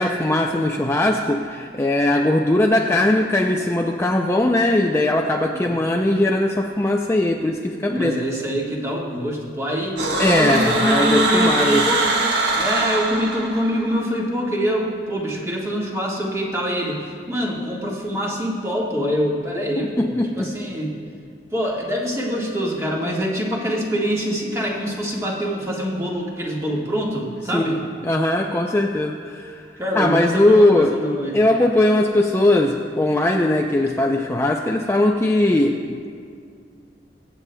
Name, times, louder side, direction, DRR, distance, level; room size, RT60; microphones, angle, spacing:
voice 1, 0.0-8.2 10.2-11.9 19.8-20.5 27.5-29.7 29.9-31.0 31.3-36.1, left 1 dB, 15° left, 1 dB, 0.4 m, -19 dB
voice 2, 5.4-5.8 7.9-12.1 12.6-21.0 21.5-27.8 29.8-31.4, equal, 15° right, -3 dB, 1.6 m, -25 dB
sound 1, 10.0-14.0, right 2 dB, 65° right, 1.2 m, -22 dB
23.5 x 8.2 x 2.2 m, 2.2 s
head